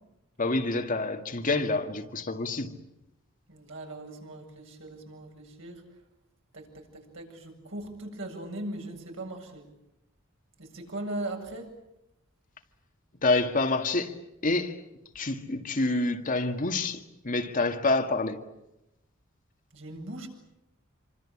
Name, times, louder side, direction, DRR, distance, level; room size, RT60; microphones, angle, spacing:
voice 1, 0.4-2.7 13.2-14.2 14.4-14.8 15.2-18.4, left 2 dB, 40° left, 2.0 m, -27 dB
voice 2, 3.5-5.8 6.5-9.7 10.6-11.7 19.7-20.3, right 1 dB, 70° right, 7.9 m, -39 dB
27.5 x 24.5 x 8.7 m
head